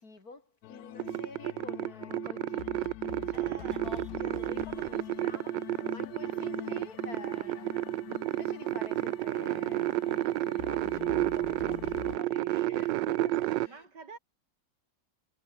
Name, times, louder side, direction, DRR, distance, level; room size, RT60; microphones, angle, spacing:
voice 1, 0.0-7.9 8.3-13.9, left 3 dB, 55° left, 4.8 m, -48 dB
sound 1, 0.6-12.2, left 15 dB, 70° left, 0.9 m, -45 dB
sound 2, 1.0-13.7, right 15 dB, 85° right, 1.3 m, -31 dB
voice 2, 3.3-3.9 5.1-5.5 5.8-5.9 6.3-6.9 7.4-7.5 13.6-14.2, right 4 dB, 70° right, 4.0 m, -50 dB
sound 3, 3.7-10.4, left 1 dB, 30° left, 8.2 m, -64 dB
omnidirectional pair, 2.0 m